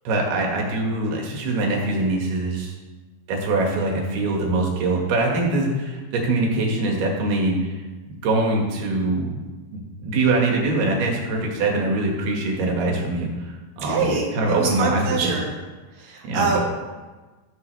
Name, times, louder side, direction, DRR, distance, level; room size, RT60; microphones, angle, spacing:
voice 1, 0.1-2.7 3.3-7.7 8.1-9.3 9.7-14.0 14.3-15.3 16.2-16.5, right 2 dB, 75° right, 0 dB, 3.8 m, -23 dB
voice 2, 13.8-15.5 15.9-16.6, right 4 dB, 25° right, -3 dB, 1.3 m, -25 dB
13.5 x 10.0 x 3.4 m, 1.3 s
omnidirectional pair, 4.6 m